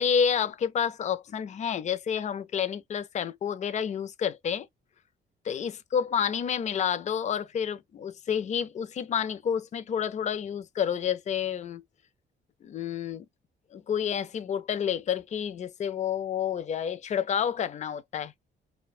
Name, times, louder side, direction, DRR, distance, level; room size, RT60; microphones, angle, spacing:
voice 1, 0.0-4.7 5.5-11.8 12.6-13.3 13.7-18.3, left 8 dB, 35° left, 0.4 m, -29 dB
2.6 x 2.1 x 2.3 m
cardioid pair, 90°, 20 cm